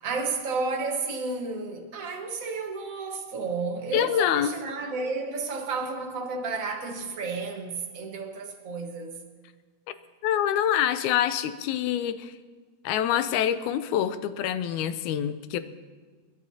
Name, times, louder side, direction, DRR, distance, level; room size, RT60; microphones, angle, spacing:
voice 1, 0.0-9.2, right 4 dB, 50° right, 1.0 m, -32 dB
voice 2, 3.9-4.6 10.2-12.3 12.8-15.6, left 10 dB, 80° left, 2.0 m, -26 dB
29.5 x 11.0 x 2.8 m
omnidirectional pair, 3.6 m